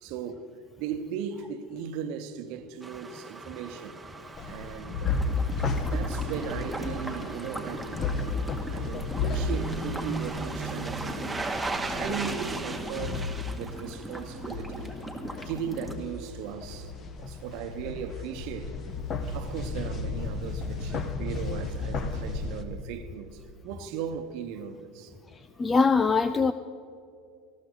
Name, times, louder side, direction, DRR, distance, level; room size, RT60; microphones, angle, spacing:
voice 1, 0.0-0.5 0.8-4.0 4.5-5.2 5.8-8.1 8.7-11.5 11.9-13.3 13.5-15.0 15.3-16.9 17.2-18.7 19.3-25.1, right 8 dB, 60° right, 1.0 m, -37 dB
sound 1, 2.8-14.7 15.0-15.1, right 3 dB, 10° right, 1.1 m, -38 dB
sound 2, 4.3-22.6, left 3 dB, 40° left, 1.2 m, -33 dB
sound 3, 5.1-15.9, equal, 5° left, 1.9 m, -39 dB
voice 2, 25.6-26.5, left 4 dB, 25° left, 0.4 m, -22 dB
19.0 x 14.0 x 4.0 m
hypercardioid pair, 80°, 0 cm